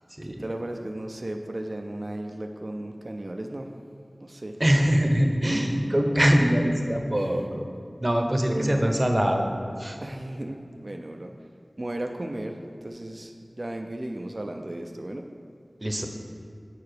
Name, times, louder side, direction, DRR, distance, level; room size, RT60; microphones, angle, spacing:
voice 1, 0.2-3.7 4.2-4.6 7.1-7.5 8.4-8.8 10.0-11.3 11.8-15.3, right 1 dB, 45° right, 3 dB, 0.5 m, -35 dB
voice 2, 4.6-7.6 8.0-9.4 9.8-10.0 15.8-16.1, equal, 30° right, 3 dB, 0.9 m, -23 dB
6.9 x 4.8 x 6.7 m, 2.5 s
wide cardioid pair, 45°, 0 cm